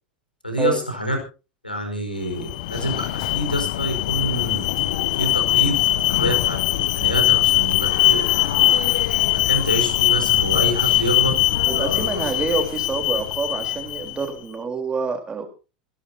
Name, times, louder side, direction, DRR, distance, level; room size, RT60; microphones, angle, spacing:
voice 1, 0.4-1.2 1.6-4.6 5.1-8.7 9.3-11.3 11.7-12.2, equal, 90° left, 5 dB, 4.8 m, -27 dB
Alarm, 2.3-14.3, left 14 dB, 60° left, 1.1 m, -21 dB
voice 2, 11.6-15.5, right 4 dB, 20° right, 4 dB, 3.8 m, -27 dB
26.0 x 11.5 x 2.8 m, 0.32 s
figure-of-eight pair, 80°, 5 cm